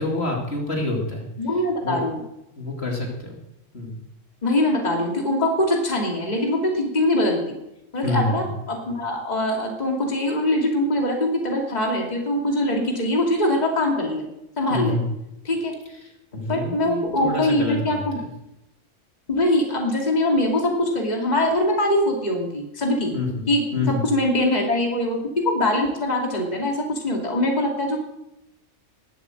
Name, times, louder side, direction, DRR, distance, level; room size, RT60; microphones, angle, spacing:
voice 1, 0.0-1.3 1.8-2.0 2.6-3.4 3.7-4.0 8.0-8.5 14.7-15.0 16.0-18.0 23.1-23.5 23.7-24.1, left 2 dB, 55° left, 0 dB, 2.9 m, -27 dB
voice 2, 1.4-2.2 4.4-7.4 7.9-14.3 14.6-15.0 15.4-15.8 16.5-18.2 19.3-23.1 23.5-28.0, left 1 dB, 35° left, 0 dB, 2.6 m, -23 dB
20.5 x 8.1 x 7.7 m, 0.90 s
omnidirectional pair, 1.3 m